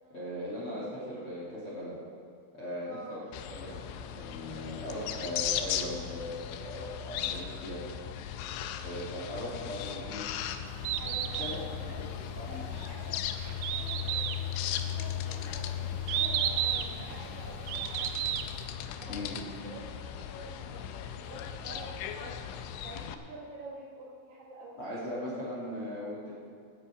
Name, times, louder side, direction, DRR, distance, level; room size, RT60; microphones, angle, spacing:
voice 1, 0.1-2.0 2.5-7.8 8.8-10.3 11.4-11.9 12.4-12.6 19.1-19.3 24.8-26.3, left 1 dB, 35° left, -7 dB, 2.5 m, -39 dB
voice 2, 2.8-3.2 8.4-8.7 11.0-18.6 19.0-22.4 22.8-24.8, right 2 dB, 65° right, -3 dB, 2.3 m, -48 dB
sound 1, 3.3-23.1, left 10 dB, 80° left, 3.0 m, -37 dB
Bird, 10.7-18.7, right 11 dB, 85° right, 2.8 m, -34 dB
17.5 x 9.7 x 4.9 m, 2.3 s
omnidirectional pair, 5.8 m